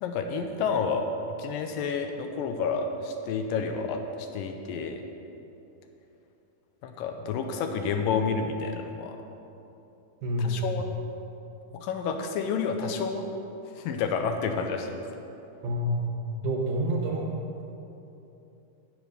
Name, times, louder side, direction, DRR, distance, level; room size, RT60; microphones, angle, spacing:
voice 1, 0.0-1.0 1.4-5.0 6.8-9.2 10.4-10.9 11.7-13.3 13.8-14.9, left 5 dB, 80° left, 5 dB, 2.3 m, -30 dB
voice 2, 10.2-10.6 15.6-16.1 16.4-17.3, equal, 70° right, 0 dB, 2.5 m, -27 dB
9.0 x 7.8 x 6.5 m, 2.9 s
omnidirectional pair, 4.1 m